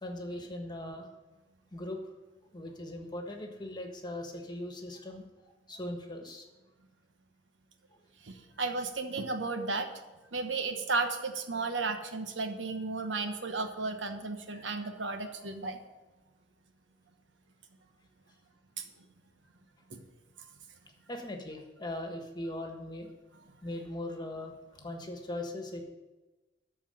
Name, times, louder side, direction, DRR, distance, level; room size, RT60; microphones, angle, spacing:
voice 1, 0.0-1.1 1.7-2.0 2.5-6.5 14.5-14.9 21.1-23.1 23.6-25.8, left 1 dB, 25° left, 4 dB, 1.4 m, -40 dB
voice 2, 8.2-9.9 10.3-15.8 18.8-18.9 19.9-20.0, right 3 dB, 90° right, 7 dB, 1.2 m, -34 dB
13.5 x 4.6 x 8.7 m, 1.2 s
head